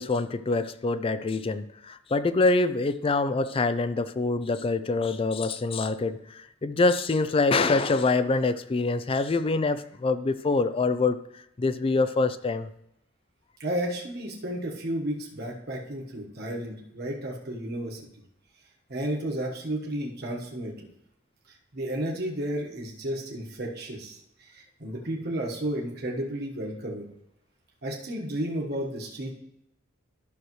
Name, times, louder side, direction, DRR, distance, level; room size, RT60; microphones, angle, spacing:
voice 1, 0.0-11.2 11.6-12.7, left 3 dB, 30° left, 14 dB, 0.4 m, -25 dB
voice 2, 13.6-18.0 18.9-20.7 21.7-27.1 27.8-29.3, right 1 dB, 55° right, -2 dB, 1.3 m, -32 dB
11.5 x 6.4 x 3.1 m, 0.81 s
head